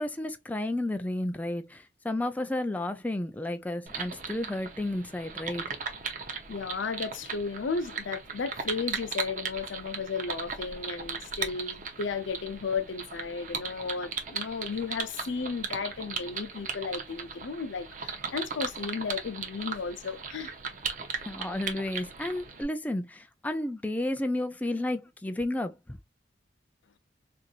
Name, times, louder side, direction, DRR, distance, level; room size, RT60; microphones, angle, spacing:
voice 1, 0.0-5.6 21.3-26.0, left 1 dB, 10° left, 0.3 m, -32 dB
sound 1, 3.9-22.6, right 5 dB, 45° right, 0.7 m, -37 dB
voice 2, 6.5-20.5, left 5 dB, 80° left, 0.6 m, -34 dB
4.4 x 2.6 x 2.4 m
head